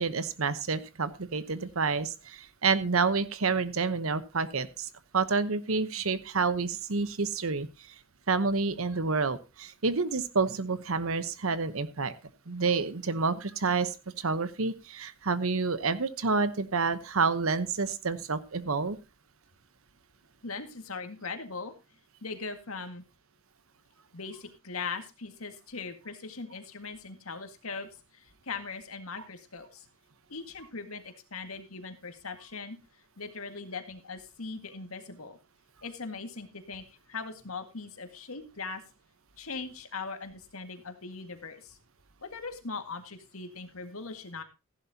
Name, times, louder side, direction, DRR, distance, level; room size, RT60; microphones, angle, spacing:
voice 1, 0.0-4.9 5.1-7.7 8.3-12.1 12.5-19.0, right 4 dB, 75° right, 14 dB, 1.0 m, -29 dB
voice 2, 20.4-21.7 22.2-23.0 24.1-29.9 30.3-32.8 33.2-35.4 35.8-38.8 39.4-41.8 42.2-44.4, left 4 dB, 80° left, 7 dB, 1.9 m, -40 dB
15.0 x 11.5 x 2.9 m, 0.27 s
head